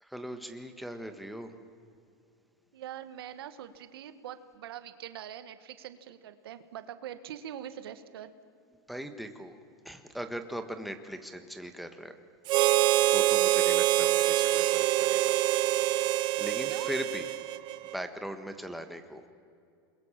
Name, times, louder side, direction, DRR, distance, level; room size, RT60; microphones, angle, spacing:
voice 1, 0.0-1.5 8.9-9.6 9.8-12.2 13.1-15.4 16.4-17.3 17.9-19.2, right 1 dB, ahead, 6 dB, 1.6 m, -39 dB
voice 2, 2.7-8.3 13.4-13.6 16.7-16.9, right 10 dB, 85° right, 11 dB, 1.6 m, -43 dB
Harmonica, 12.5-18.0, right 15 dB, 40° right, 0.6 m, -25 dB
27.5 x 21.5 x 7.5 m, 2.4 s
supercardioid pair, 135°, 12 cm